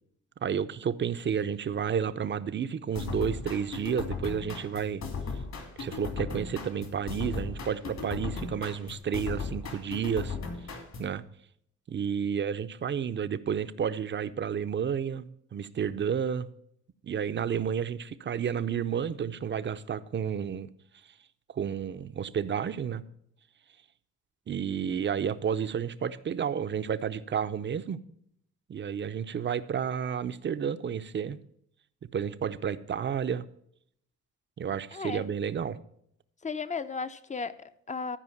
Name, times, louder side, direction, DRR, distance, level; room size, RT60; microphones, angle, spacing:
voice 1, 0.4-5.0 5.8-10.4 11.0-11.2 11.9-16.5 17.0-20.7 21.5-23.0 24.5-28.0 28.7-31.4 32.1-33.4 34.6-35.8, right 7 dB, 40° right, 0.6 m, -31 dB
sound 1, 3.0-11.2, left 4 dB, 60° left, 2.7 m, -37 dB
voice 2, 34.9-35.3 36.4-38.2, left 4 dB, 25° left, 0.7 m, -35 dB
12.5 x 4.9 x 7.1 m
cardioid pair, 90°, 30 cm